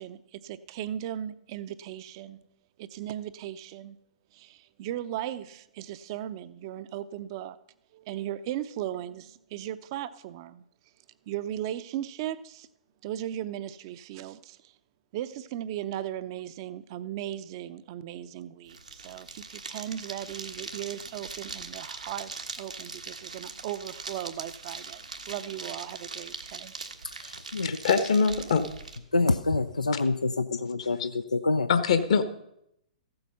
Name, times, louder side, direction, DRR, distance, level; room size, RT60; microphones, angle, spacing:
voice 1, 0.0-2.4 2.8-4.0 4.3-7.6 7.9-10.6 11.3-12.7 13.0-14.7 15.1-26.7, right 11 dB, 40° right, 0.7 m, -37 dB
sound 1, 18.7-29.0, right 3 dB, 80° right, 1.4 m, -41 dB
voice 2, 27.0-27.8 29.1-31.7, left 3 dB, 80° left, 0.5 m, -27 dB
voice 3, 27.6-28.6 31.7-32.2, left 5 dB, 55° left, 1.2 m, -23 dB
14.5 x 7.8 x 5.6 m
figure-of-eight pair, 115°, 4 cm